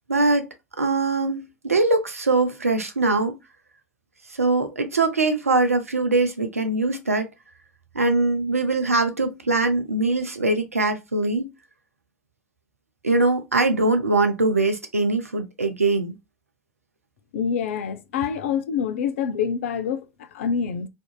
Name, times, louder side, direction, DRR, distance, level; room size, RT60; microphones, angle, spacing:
voice 1, 0.1-0.5 0.8-3.4 4.3-7.3 7.9-11.5 13.0-16.2, right 3 dB, 85° right, 0.5 m, -22 dB
voice 2, 17.3-20.9, left 7 dB, 65° left, 0.4 m, -26 dB
3.5 x 2.5 x 2.3 m
figure-of-eight pair, 75°, 8 cm